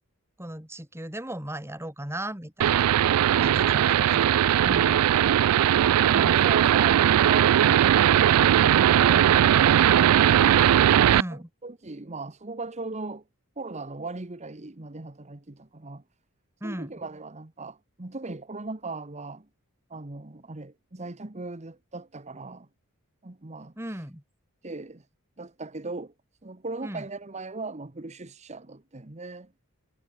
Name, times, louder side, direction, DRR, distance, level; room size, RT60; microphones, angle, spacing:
voice 1, 0.4-2.9 3.3-4.3 4.6-5.1 6.1-6.5 11.1-11.5 16.6-16.9 23.8-24.2 26.8-27.1, right 1 dB, 10° right, 3.1 m, -36 dB
sound 1, 2.6-11.2, right 10 dB, 80° right, 0.3 m, -19 dB
voice 2, 6.0-10.5 10.9-13.2 13.6-16.0 16.6-19.5 19.9-22.7 23.2-24.0 24.6-25.0 25.4-26.1 26.4-29.5, right 3 dB, 30° right, 1.2 m, -38 dB
head